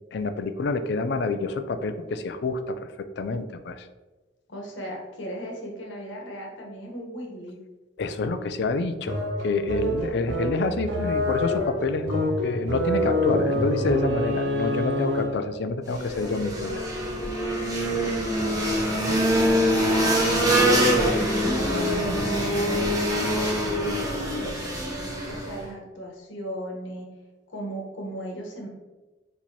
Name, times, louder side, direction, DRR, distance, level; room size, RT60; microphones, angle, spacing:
voice 1, 0.1-3.9 8.0-16.9, left 3 dB, 60° left, 9 dB, 0.4 m, -28 dB
voice 2, 4.5-7.6 17.8-24.9 25.2-27.1 27.5-28.7, equal, 80° left, -1 dB, 1.2 m, -37 dB
sound 1, 9.1-15.5, equal, 75° right, 0.7 m, -27 dB
sound 2, 15.8-25.7, equal, 20° right, 1.0 m, -24 dB
4.5 x 4.0 x 2.9 m, 1.2 s
head